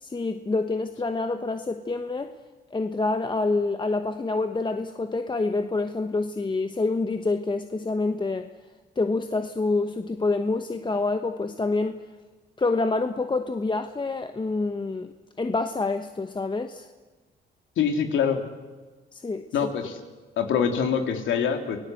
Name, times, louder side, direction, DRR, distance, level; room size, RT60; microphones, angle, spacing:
voice 1, 0.0-2.3 2.7-8.5 9.0-12.0 12.6-15.1 15.4-16.9 19.1-19.7, left 3 dB, 25° left, 8 dB, 1.2 m, -27 dB
voice 2, 17.8-18.4 19.5-19.9 20.4-21.8, left 7 dB, 75° left, 5 dB, 3.3 m, -24 dB
28.5 x 18.0 x 7.9 m, 1.3 s
cardioid pair, 90°, 20 cm